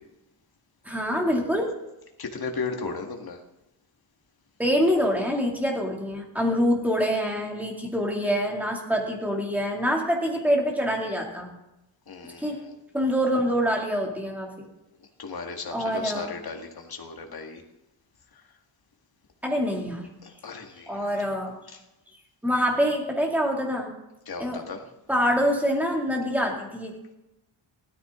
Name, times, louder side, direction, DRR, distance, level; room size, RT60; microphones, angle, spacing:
voice 1, 0.8-1.7 4.6-11.5 12.2-12.6 12.9-14.5 15.7-16.3 19.4-20.1 20.9-21.5 22.4-23.9 24.4-24.6 25.1-27.1, equal, 5° right, 0 dB, 2.4 m, -25 dB
voice 2, 2.2-3.4 12.1-12.7 15.2-17.6 20.2-21.2 24.3-24.8, left 4 dB, 50° left, 3 dB, 1.8 m, -35 dB
16.0 x 13.5 x 3.7 m, 0.94 s
wide cardioid pair, 170°, 47 cm